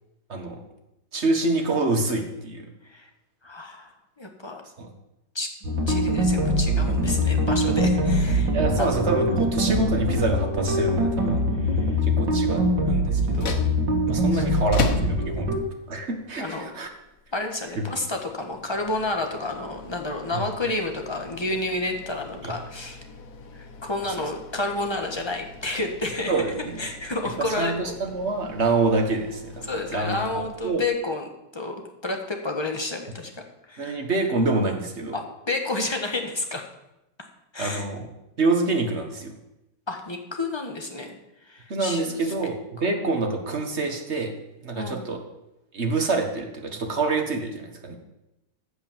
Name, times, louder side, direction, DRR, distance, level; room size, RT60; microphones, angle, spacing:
voice 1, 0.3-0.6 1.1-2.7 4.8-4.9 8.5-11.4 12.0-13.6 14.1-15.5 15.9-16.9 20.3-20.4 22.4-22.5 24.0-24.1 26.3-26.9 27.4-30.2 30.6-30.8 33.8-35.2 37.6-38.1 38.4-39.3 41.7-44.3 44.6-45.2 45.7-48.0, right 3 dB, 40° right, 3 dB, 1.7 m, -26 dB
voice 2, 3.4-4.6 5.3-5.5 5.9-8.5 8.8-8.9 11.6-12.0 14.3-14.4 16.4-16.7 17.3-23.0 23.5-26.4 26.8-27.9 29.6-34.0 35.1-36.7 37.5-37.9 39.9-42.3 44.7-45.1, left 2 dB, 15° left, 3 dB, 1.3 m, -30 dB
sound 1, 5.6-15.6, equal, 90° right, 2.4 m, -23 dB
sound 2, 13.2-31.0, left 5 dB, 55° left, 1.4 m, -38 dB
14.5 x 5.6 x 7.3 m, 0.91 s
omnidirectional pair, 1.9 m